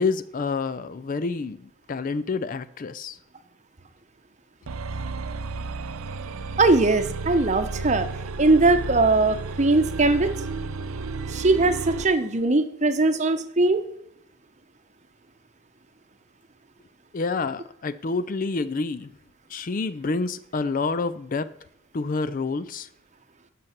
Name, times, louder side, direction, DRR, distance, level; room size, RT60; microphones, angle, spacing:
voice 1, 0.0-3.2 17.1-19.1 19.5-21.5 21.9-22.9, left 4 dB, 40° left, 15 dB, 0.4 m, -28 dB
sound 1, 4.7-12.1, right 3 dB, 80° right, 0.6 m, -32 dB
voice 2, 6.6-8.1 8.4-10.3 11.3-13.8, right 2 dB, 35° right, 9 dB, 0.8 m, -20 dB
12.0 x 6.6 x 5.8 m, 0.74 s
head